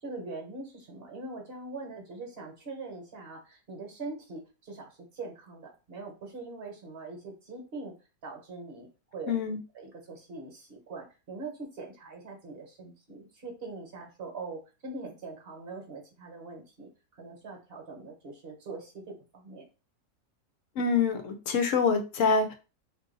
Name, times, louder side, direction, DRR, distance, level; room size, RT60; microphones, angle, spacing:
voice 1, 0.0-7.9 8.2-9.4 9.7-19.7, right 3 dB, 45° right, 2 dB, 1.1 m, -42 dB
voice 2, 9.3-9.6 20.8-22.5, left 5 dB, 65° left, 6 dB, 0.9 m, -26 dB
2.7 x 2.5 x 3.8 m, 0.31 s
omnidirectional pair, 1.6 m